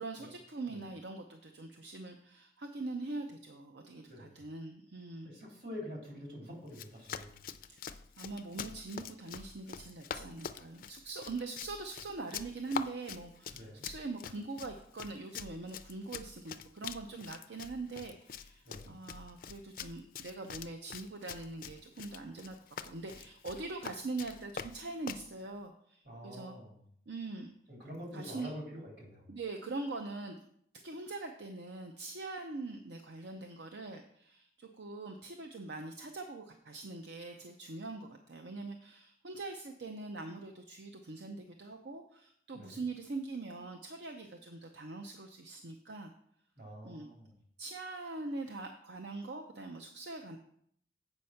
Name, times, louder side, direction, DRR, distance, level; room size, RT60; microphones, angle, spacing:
voice 1, 0.0-5.3 7.7-7.8 8.2-22.6 22.8-26.6 27.1-27.5 28.1-28.5 29.3-30.5 30.8-46.1 46.8-47.1 47.6-50.4, right 3 dB, 85° right, 4 dB, 0.7 m, -43 dB
voice 2, 4.1-4.4 5.2-7.4 13.5-13.8 18.6-19.0 26.0-26.9 27.7-29.4 42.5-42.8 46.6-47.3, equal, 65° right, -3 dB, 3.3 m, -46 dB
Run, 6.7-25.3, left 7 dB, 50° left, 0.4 m, -45 dB
8.1 x 5.3 x 5.7 m, 0.66 s
head